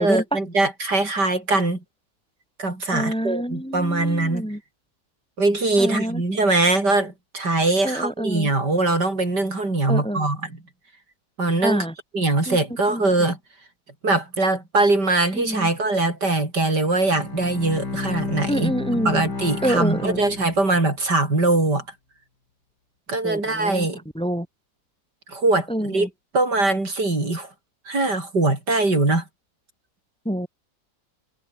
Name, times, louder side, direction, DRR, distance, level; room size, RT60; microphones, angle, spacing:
voice 1, 0.0-1.8 2.6-4.5 5.4-10.5 11.4-11.9 12.1-13.4 14.0-18.7 19.0-21.8 23.1-24.0 25.3-26.1 26.3-27.5 27.9-29.2, right 2 dB, 75° right, 6.6 m, -22 dB
voice 2, 2.9-4.6 5.8-6.2 7.8-8.5 9.9-10.3 11.6-11.9 12.5-12.6 12.9-13.0 15.3-15.7 18.5-19.2 19.6-20.2 23.2-23.9 24.1-24.5 25.7-26.1 30.2-30.5, equal, 5° left, 2.5 m, -26 dB
Bowed string instrument, 17.0-21.0, left 3 dB, 75° left, 4.6 m, -31 dB
omnidirectional pair, 1.8 m